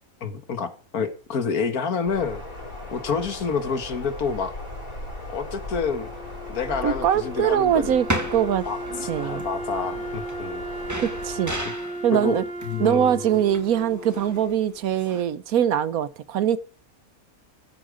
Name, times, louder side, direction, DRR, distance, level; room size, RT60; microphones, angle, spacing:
voice 1, 0.2-2.4 2.9-4.6 5.3-6.1 6.5-8.0 8.7-10.6 12.1-13.2, left 5 dB, 80° left, 2.0 m, -28 dB
sound 1, 2.1-11.7, left 1 dB, 65° left, 5.8 m, -38 dB
Wind instrument woodwind instrument, 5.8-14.9, right 1 dB, 35° right, 2.2 m, -36 dB
voice 2, 6.8-8.1 8.3-8.6 9.1-9.4 11.0-11.5 12.0-12.4 12.8-16.6, right 9 dB, 80° right, 1.3 m, -22 dB
sound 2, 7.8-15.2, right 1 dB, 10° right, 2.0 m, -35 dB
15.0 x 8.5 x 5.1 m
omnidirectional pair, 1.5 m